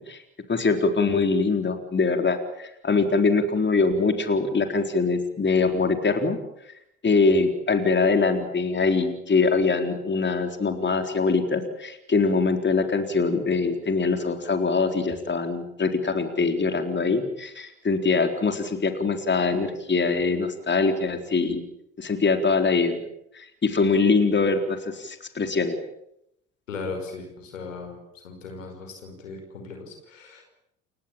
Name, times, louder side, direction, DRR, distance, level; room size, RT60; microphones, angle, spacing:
voice 1, 0.5-6.4 7.0-21.6 22.0-23.0 23.3-25.8, left 4 dB, 30° left, 6 dB, 4.1 m, -23 dB
voice 2, 26.7-30.5, left 4 dB, 85° left, 4 dB, 5.4 m, -38 dB
29.5 x 17.5 x 8.9 m, 0.79 s
hypercardioid pair, 55°, 38 cm